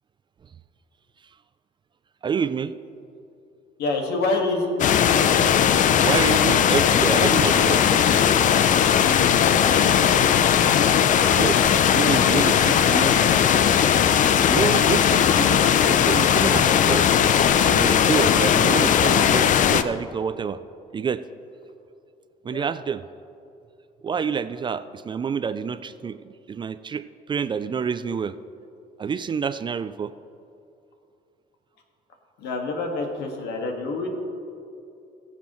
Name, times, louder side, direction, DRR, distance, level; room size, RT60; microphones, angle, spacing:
voice 1, 2.2-2.7 6.0-7.9 11.4-13.2 14.5-17.1 17.6-20.6 20.9-21.2 22.4-23.0 24.0-26.2 26.5-28.4 29.0-30.1, right 6 dB, 30° right, 13 dB, 0.3 m, -28 dB
voice 2, 3.8-5.0 9.0-9.4 22.5-22.7 32.4-34.1, left 3 dB, 75° left, 2 dB, 1.7 m, -27 dB
sound 1, 4.8-19.8, left 8 dB, 50° left, 0.5 m, -18 dB
19.5 x 7.4 x 3.0 m, 2.6 s
cardioid pair, 110°, 17 cm